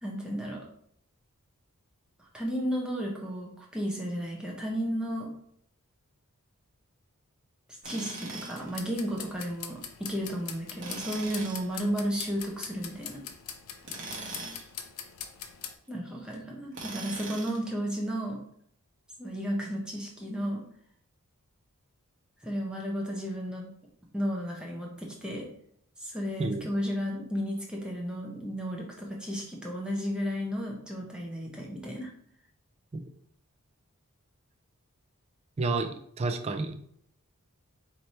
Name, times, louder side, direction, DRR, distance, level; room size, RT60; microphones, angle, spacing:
voice 1, 0.0-0.6 2.3-5.3 7.8-13.2 15.9-18.4 19.2-20.6 22.4-23.7 24.1-25.5 26.0-32.1, equal, 5° right, -2 dB, 0.8 m, -33 dB
Tools, 7.8-8.7 10.8-11.7 13.8-14.7 16.7-17.7, right 3 dB, 55° right, 1.0 m, -40 dB
sound 1, 8.6-15.7, left 8 dB, 70° left, 0.5 m, -43 dB
voice 2, 35.6-36.7, right 3 dB, 30° right, 7 dB, 0.3 m, -30 dB
3.2 x 2.8 x 4.2 m, 0.67 s
head